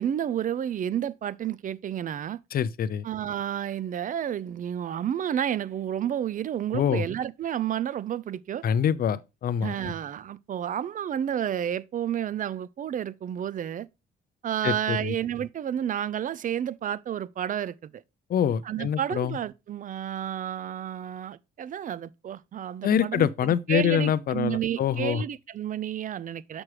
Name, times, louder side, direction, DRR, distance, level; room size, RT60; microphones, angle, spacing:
voice 1, 0.0-2.4 3.0-8.6 9.6-13.9 14.4-18.0 18.7-23.3 23.7-26.6, right 10 dB, 40° right, 0.4 m, -31 dB
voice 2, 2.5-3.0 6.7-7.0 8.6-9.9 14.6-15.1 18.3-19.4 22.8-25.2, left 8 dB, 50° left, 0.5 m, -25 dB
6.1 x 5.9 x 3.2 m
cardioid pair, 90°, 20 cm